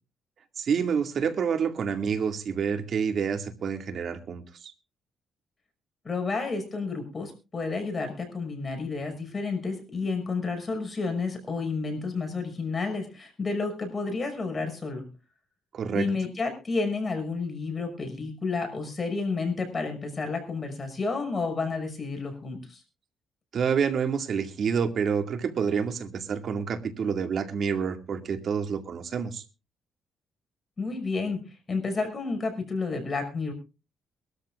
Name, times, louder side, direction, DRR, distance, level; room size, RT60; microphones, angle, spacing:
voice 1, 0.6-4.7 15.7-16.1 23.5-29.4, right 6 dB, 60° right, 6 dB, 2.1 m, -28 dB
voice 2, 6.0-15.0 15.9-22.8 30.8-31.4 31.7-33.5, left 4 dB, 30° left, 5 dB, 5.8 m, -31 dB
23.0 x 13.5 x 2.5 m, 0.32 s
cardioid pair, 90°, 0 cm